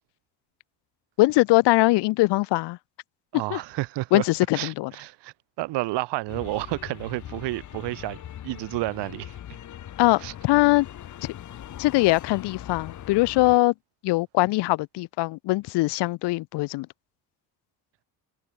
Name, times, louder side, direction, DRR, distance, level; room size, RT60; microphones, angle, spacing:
voice 1, 1.2-2.8 3.3-3.6 4.1-4.9 10.0-10.9 11.8-13.7 14.0-16.9, left 20 dB, 80° left, 0.7 m, -22 dB
voice 2, 3.3-4.2 4.5-8.2 8.4-9.3 10.2-10.3, right 19 dB, 90° right, 1.3 m, -30 dB
sound 1, 6.3-13.6, left 11 dB, 45° left, 1.3 m, -41 dB
cardioid pair, 140°, 41 cm